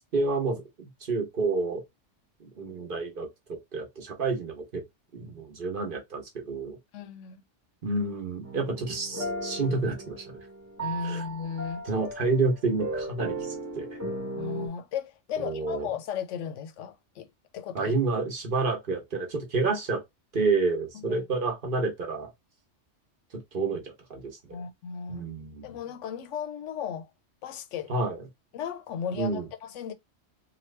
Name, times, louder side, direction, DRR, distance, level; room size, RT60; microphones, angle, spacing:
voice 1, 0.1-1.8 2.4-4.8 5.1-6.8 7.8-10.4 11.0-11.2 11.8-14.0 15.4-15.9 17.7-20.0 20.3-22.3 23.3-24.6 25.1-25.7 27.9-28.2 29.2-29.4, right 3 dB, 50° right, 1.0 m, -29 dB
voice 2, 6.9-7.4 10.8-11.8 14.3-17.3 17.5-17.9 20.9-21.2 24.5-25.2 25.6-27.1 27.4-27.9 28.5-29.9, left 7 dB, 85° left, 0.9 m, -35 dB
sound 1, 8.4-14.7, right 2 dB, 15° right, 0.9 m, -36 dB
2.9 x 2.5 x 3.2 m
omnidirectional pair, 1.2 m